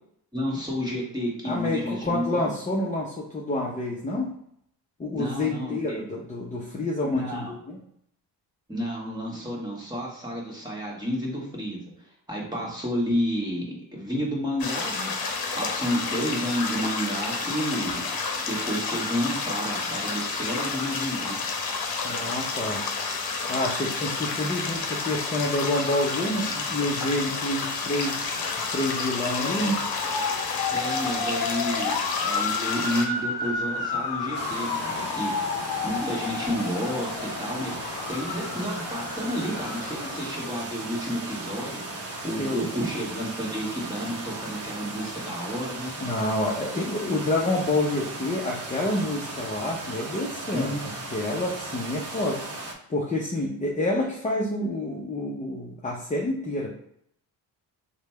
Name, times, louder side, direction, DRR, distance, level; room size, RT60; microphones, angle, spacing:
voice 1, 0.3-2.5 5.1-6.0 7.0-7.5 8.7-11.8 12.3-15.1 15.6-18.0 18.4-21.4 29.4-29.7 30.7-35.5 35.8-41.8 42.2-45.9 50.5-51.0, equal, 10° right, -4 dB, 1.5 m, -31 dB
voice 2, 1.4-4.3 5.0-7.8 22.0-22.8 23.5-29.8 42.4-42.7 46.0-50.7 51.1-52.4 52.9-56.7, left 1 dB, 20° left, -3 dB, 0.6 m, -28 dB
sound 1, 14.6-33.1, left 4 dB, 55° left, 0.8 m, -30 dB
Motor vehicle (road) / Siren, 27.9-40.6, left 4 dB, 85° left, 0.6 m, -32 dB
sound 2, 34.3-52.7, right 2 dB, 35° right, 0.8 m, -37 dB
3.1 x 2.2 x 4.2 m, 0.72 s
supercardioid pair, 75°, 43 cm